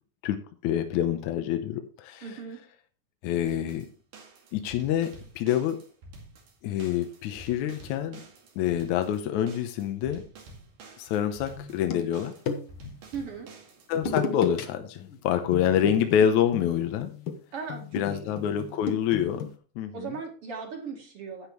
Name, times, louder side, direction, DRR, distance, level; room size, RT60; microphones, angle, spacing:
voice 1, 0.2-2.3 3.2-3.9 4.5-5.8 6.6-8.2 8.6-10.2 11.0-12.3 13.9-17.1 17.9-19.5 19.8-20.1, left 9 dB, 75° left, 7 dB, 2.1 m, -27 dB
voice 2, 2.2-2.6 13.1-13.5 17.5-18.4 19.9-21.5, right 5 dB, 50° right, 2 dB, 2.9 m, -38 dB
sound 1, 3.5-14.2, right 2 dB, 85° right, 3.8 m, -49 dB
sound 2, 11.6-12.9 13.9-14.6 14.9-15.2 15.5-19.5, left 5 dB, 60° left, 1.5 m, -34 dB
11.5 x 8.8 x 3.0 m, 0.39 s
omnidirectional pair, 3.7 m